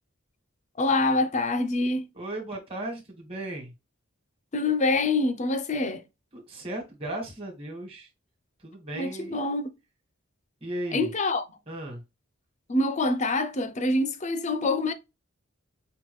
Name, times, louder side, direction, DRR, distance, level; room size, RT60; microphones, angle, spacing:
voice 1, 0.8-2.1 4.5-6.0 9.0-9.7 10.9-11.4 12.7-14.9, left 2 dB, 35° left, 0.5 m, -25 dB
voice 2, 2.1-3.7 6.3-8.1 8.6-9.4 10.6-11.1 11.7-12.0, right 1 dB, 30° right, 1.5 m, -36 dB
5.4 x 2.3 x 3.1 m
head